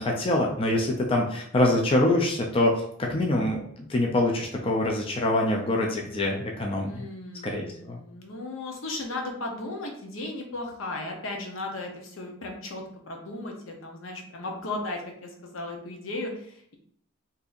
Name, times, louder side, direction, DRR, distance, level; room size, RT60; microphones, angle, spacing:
voice 1, 0.0-7.1 7.4-8.0, left 1 dB, 25° left, 0 dB, 0.4 m, -25 dB
voice 2, 6.9-16.7, left 2 dB, 75° left, 1 dB, 0.8 m, -36 dB
3.9 x 2.7 x 2.5 m, 0.65 s
head